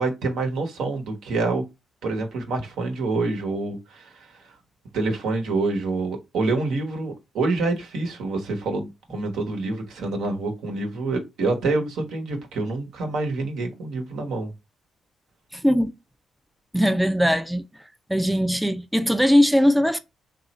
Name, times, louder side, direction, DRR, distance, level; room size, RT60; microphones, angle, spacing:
voice 1, 0.0-1.6 2.0-4.5 4.9-14.5, right 3 dB, 80° right, 0.9 m, -27 dB
voice 2, 15.5-15.9 16.7-17.6 18.1-20.0, equal, 5° right, 0.4 m, -20 dB
3.0 x 2.4 x 4.0 m
supercardioid pair, 60°, 0 cm